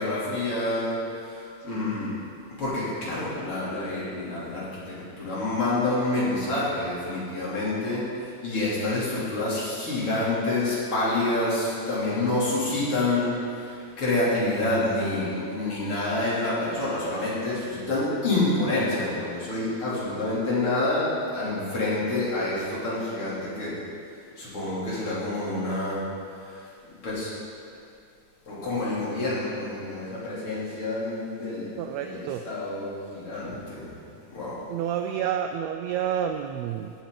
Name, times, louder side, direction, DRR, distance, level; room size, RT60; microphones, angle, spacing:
voice 1, 0.0-2.2 2.6-23.8 24.4-26.0 26.4-26.7 27.0-27.3 28.5-33.9 34.3-34.6, left 2 dB, 45° left, -8 dB, 4.0 m, -28 dB
voice 2, 31.8-32.4 34.7-36.9, right 9 dB, 80° right, 5 dB, 1.6 m, -29 dB
17.0 x 8.3 x 4.0 m, 2.5 s
omnidirectional pair, 3.4 m